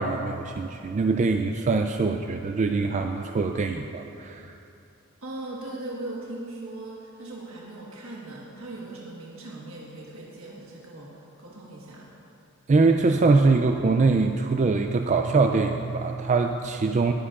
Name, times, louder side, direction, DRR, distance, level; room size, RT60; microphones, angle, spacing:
voice 1, 0.0-4.5 12.7-17.1, right 3 dB, 35° right, 5 dB, 0.3 m, -23 dB
voice 2, 5.2-12.1, right 2 dB, 70° right, -4 dB, 1.5 m, -39 dB
20.0 x 9.8 x 2.5 m, 2.7 s
head